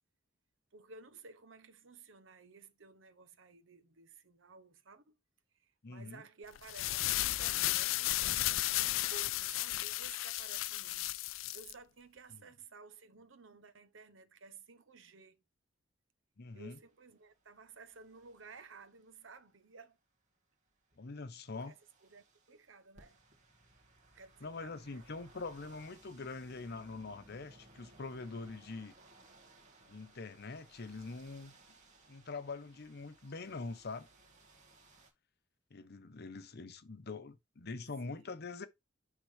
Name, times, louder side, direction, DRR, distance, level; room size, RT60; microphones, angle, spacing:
voice 1, 0.7-5.2 5.5-8.2 8.8-15.4 16.5-20.0 21.5-21.8 22.0-23.2 24.1-25.0 38.1-38.3, right 4 dB, 75° right, 0.9 m, -55 dB
voice 2, 5.8-6.2 12.3-12.4 16.4-16.8 21.0-21.7 24.4-28.9 29.9-31.5 32.1-34.1 35.7-38.7, left 3 dB, 55° left, 0.8 m, -44 dB
sound 1, 6.6-11.7, left 16 dB, 85° left, 0.4 m, -34 dB
sound 2, 16.5-19.4 20.7-35.1, right 2 dB, 40° right, 2.0 m, -63 dB
9.8 x 3.7 x 3.2 m
head